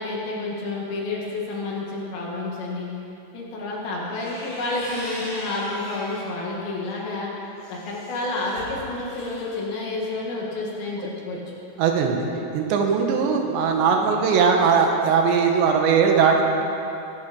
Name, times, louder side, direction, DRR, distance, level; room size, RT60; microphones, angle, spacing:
voice 1, 0.0-2.9 3.3-7.3 7.7-11.4, left 2 dB, 60° left, -3 dB, 3.7 m, -29 dB
sound 1, 4.0-6.3 6.8-9.6, equal, 30° left, 2.9 m, -40 dB
voice 2, 11.8-12.3 12.5-16.4, right 6 dB, 85° right, 2 dB, 3.5 m, -19 dB
19.0 x 10.0 x 5.2 m, 2.9 s
omnidirectional pair, 5.0 m